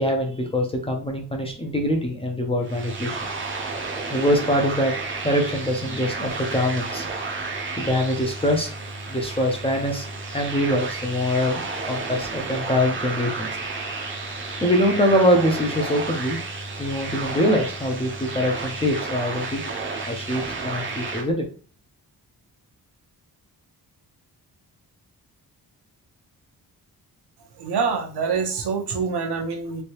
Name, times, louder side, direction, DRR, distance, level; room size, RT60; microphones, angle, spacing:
voice 1, 0.0-3.2 4.0-4.9 5.2-7.1 7.8-8.7 9.1-10.1 10.3-11.6 11.9-13.5 14.6-16.4 16.8-19.6 20.0-21.5, equal, 15° left, 1 dB, 0.4 m, -23 dB
sound 1, 2.6-21.2, right 3 dB, 30° right, 0.5 m, -32 dB
voice 2, 27.6-29.8, right 5 dB, 80° right, 4 dB, 0.8 m, -25 dB
3.2 x 2.6 x 2.8 m, 0.40 s
wide cardioid pair, 175°, 39 cm